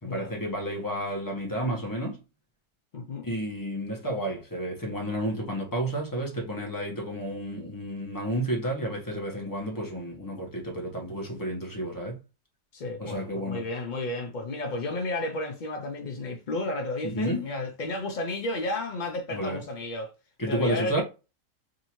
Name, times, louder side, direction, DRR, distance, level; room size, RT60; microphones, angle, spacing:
voice 1, 0.0-2.2 3.2-12.2 13.0-13.6 17.0-17.5 19.3-19.6 20.4-21.0, right 1 dB, 15° left, 1.0 m, -31 dB
voice 2, 2.9-3.3 12.7-20.1 20.4-21.0, left 2 dB, 90° left, 0.4 m, -32 dB
3.7 x 2.7 x 3.0 m
omnidirectional pair, 1.7 m